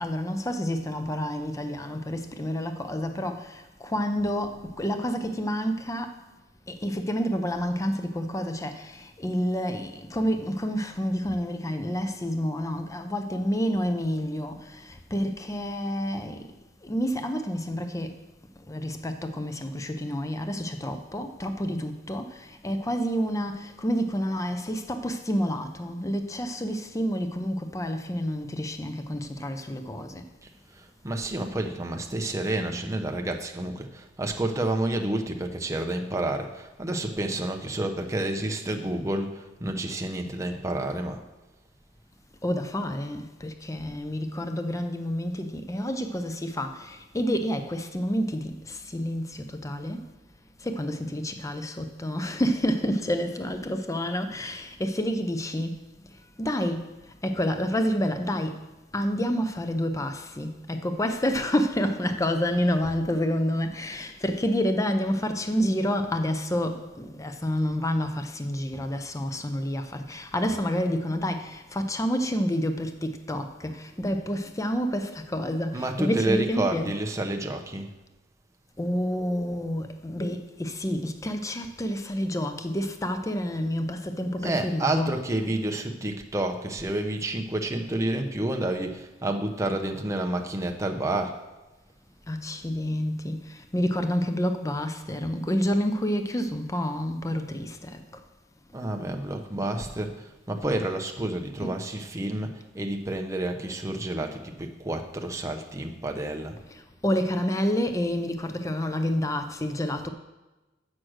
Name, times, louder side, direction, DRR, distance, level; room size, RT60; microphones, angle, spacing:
voice 1, 0.0-6.2 6.7-16.5 16.8-18.2 18.6-30.3 42.4-50.1 50.6-58.7 58.9-77.0 78.8-85.2 92.3-98.2 101.6-101.8 106.7-110.1, equal, 15° left, 0.6 m, -29 dB
voice 2, 30.8-41.2 75.7-77.9 84.4-91.4 98.7-106.6, right 1 dB, 15° right, 0.8 m, -29 dB
7.5 x 6.3 x 6.3 m
head